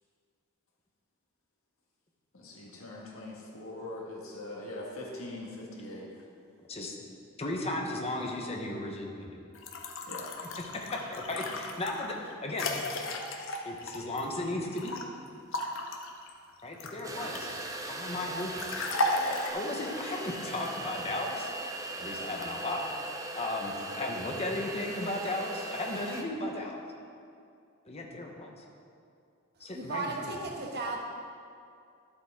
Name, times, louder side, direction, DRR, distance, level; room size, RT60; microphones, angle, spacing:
voice 1, 2.3-6.1 10.1-10.3, left 1 dB, 80° left, -3 dB, 1.8 m, -42 dB
voice 2, 6.6-7.0 7.4-9.4 10.7-12.7 13.6-15.0 16.6-17.5 17.9-18.9 19.5-21.5 22.0-22.9 23.3-26.8 27.9-28.6 29.6-30.4, left 2 dB, 30° left, 0 dB, 1.1 m, -35 dB
sound 1, 9.5-15.0 15.5-17.6 18.6-19.5, left 2 dB, 65° left, 0.8 m, -35 dB
sound 2, 17.0-26.2, right 2 dB, 15° right, 0.6 m, -39 dB
voice 3, 29.7-31.0, right 3 dB, 50° right, 0 dB, 1.2 m, -35 dB
11.0 x 7.8 x 3.7 m, 2.4 s
head